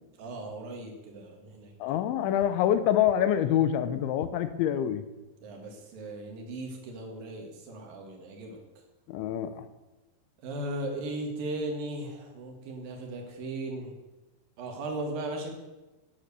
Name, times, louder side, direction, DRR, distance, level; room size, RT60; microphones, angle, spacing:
voice 1, 0.2-1.7 5.4-8.6 10.4-13.9 14.6-15.5, right 2 dB, 60° right, 2 dB, 3.1 m, -37 dB
voice 2, 1.8-5.0 9.1-9.7, left 10 dB, 85° left, 11 dB, 3.1 m, -26 dB
9.8 x 9.2 x 6.7 m, 1.1 s
omnidirectional pair, 5.4 m